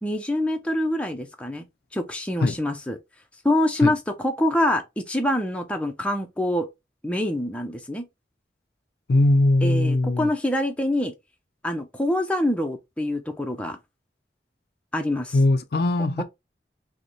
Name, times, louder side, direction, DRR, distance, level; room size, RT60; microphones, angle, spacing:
voice 1, 0.0-1.6 1.9-3.0 3.4-6.7 7.0-8.1 9.6-11.1 11.6-13.8 14.9-15.4 16.2-16.3, left 1 dB, 5° left, 0.5 m, -25 dB
voice 2, 9.1-10.3 15.3-16.2, left 2 dB, 60° left, 0.4 m, -20 dB
5.0 x 2.1 x 3.1 m
head